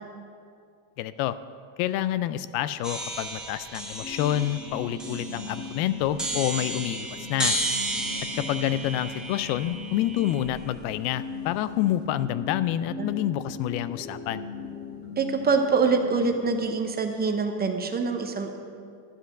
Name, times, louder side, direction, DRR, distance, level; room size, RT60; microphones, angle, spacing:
voice 1, 1.0-1.4 1.8-7.6 8.4-14.4, left 13 dB, 70° left, 15 dB, 0.6 m, -28 dB
sound 1, 2.8-10.8, right 1 dB, ahead, 1.1 m, -33 dB
sound 2, 4.0-16.6, left 4 dB, 20° left, 2.3 m, -39 dB
voice 2, 15.2-18.6, right 4 dB, 20° right, 5 dB, 0.8 m, -25 dB
11.5 x 7.6 x 6.3 m, 2.3 s
cardioid pair, 140°, 48 cm